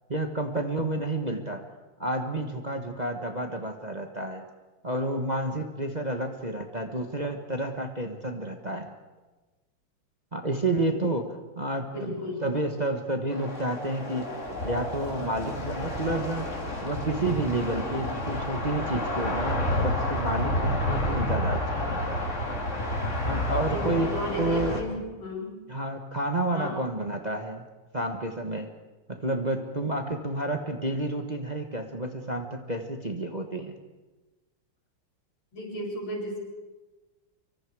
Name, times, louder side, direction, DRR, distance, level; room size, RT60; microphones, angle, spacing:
voice 1, 0.1-1.7 2.0-4.4 4.8-8.9 10.3-14.3 14.6-16.5 16.8-22.2 23.2-24.1 24.4-24.9 25.7-27.6 27.9-28.7 29.1-33.7, right 2 dB, 25° right, 4 dB, 1.3 m, -30 dB
voice 2, 11.9-12.4 23.6-25.6 26.5-26.8 35.5-36.4, left 1 dB, 85° left, -3 dB, 7.9 m, -34 dB
sound 1, 13.3-24.8, left 1 dB, 35° left, 3.2 m, -30 dB
25.5 x 24.0 x 4.9 m, 1.2 s
omnidirectional pair, 2.2 m